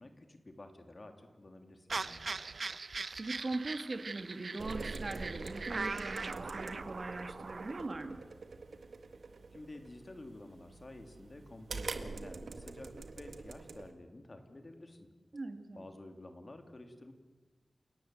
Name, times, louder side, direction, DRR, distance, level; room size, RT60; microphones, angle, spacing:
voice 1, 0.0-2.2 9.5-15.1 15.7-17.1, left 2 dB, 40° left, 6 dB, 2.9 m, -51 dB
sound 1, 1.9-7.9, right 4 dB, 65° right, 0.8 m, -41 dB
voice 2, 3.2-8.2 15.3-15.9, right 2 dB, 50° right, 8 dB, 2.0 m, -41 dB
sound 2, 4.6-13.9, right 4 dB, 85° right, 1.7 m, -45 dB
29.5 x 18.0 x 7.8 m, 1.3 s
wide cardioid pair, 100°, 0 cm